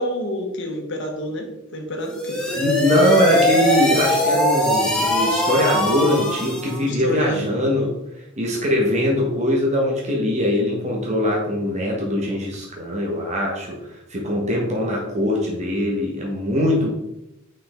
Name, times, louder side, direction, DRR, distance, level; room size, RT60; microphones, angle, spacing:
voice 1, 0.0-2.6 6.8-7.6, equal, 55° left, 2 dB, 1.2 m, -28 dB
sound 1, 2.0-6.8, left 1 dB, 5° left, 1.0 m, -21 dB
voice 2, 2.5-7.9 8.4-13.8 14.1-16.9, left 1 dB, 30° right, -1 dB, 1.4 m, -21 dB
5.6 x 5.0 x 3.7 m, 0.86 s
head